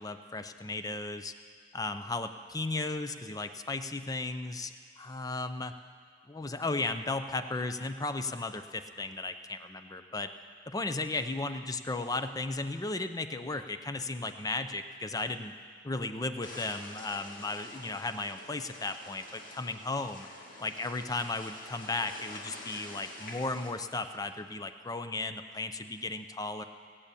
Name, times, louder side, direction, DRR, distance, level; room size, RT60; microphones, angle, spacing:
voice 1, 0.0-1.3 1.7-5.7 6.3-10.3 10.7-15.5 15.8-20.3 20.6-26.6, left 3 dB, 20° left, 9 dB, 0.5 m, -35 dB
sound 1, 16.4-23.7, left 1 dB, 50° left, 1.9 m, -47 dB
18.0 x 7.1 x 8.4 m, 2.2 s
head